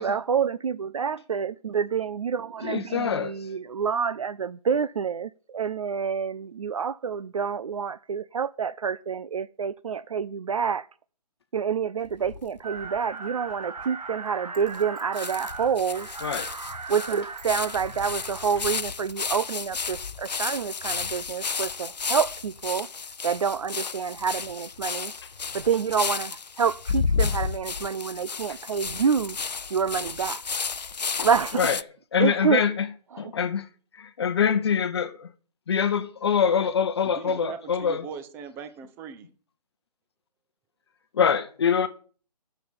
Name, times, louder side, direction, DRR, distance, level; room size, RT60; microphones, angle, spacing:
voice 1, 0.0-10.9 11.5-16.1 16.9-22.9 23.2-25.1 25.5-29.4 29.7-30.4 31.2-31.7 32.2-32.6 33.1-33.3, right 6 dB, 55° right, 0.5 m, -27 dB
voice 2, 2.6-3.3 16.2-16.5 24.8-25.0 31.2-31.3 31.6-31.8 32.1-32.9 33.2-33.7 34.0-35.1 35.7-38.0 41.1-41.9, left 7 dB, 40° left, 0.9 m, -24 dB
sound 1, 12.1-13.0 13.5-13.6 13.8-13.9 14.7-14.8 15.2-31.8, left 5 dB, 85° left, 0.6 m, -32 dB
sound 2, 12.6-18.8, right 4 dB, 70° right, 1.3 m, -38 dB
Chink clink, 14.5-16.7 17.2-17.8 18.5-19.6 19.9-20.5 20.8-20.9 21.5-22.7 23.3-23.4, right 7 dB, 30° right, 3.1 m, -53 dB
voice 3, 37.0-39.3, right 6 dB, 10° right, 0.8 m, -40 dB
8.9 x 7.0 x 8.9 m
figure-of-eight pair, 150°, 21 cm